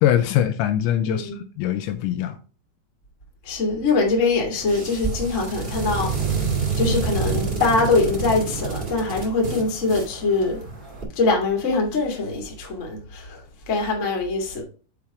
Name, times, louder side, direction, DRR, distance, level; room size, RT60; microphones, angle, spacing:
voice 1, 0.0-2.4, left 11 dB, 85° left, 2.8 m, -22 dB
voice 2, 1.1-1.4 3.4-6.1 6.8-10.6 11.1-13.4 13.7-14.6, left 3 dB, 40° left, 1.0 m, -23 dB
sound 1, 4.6-11.0, right 4 dB, 60° right, 0.5 m, -28 dB
7.3 x 4.3 x 4.9 m
omnidirectional pair, 5.6 m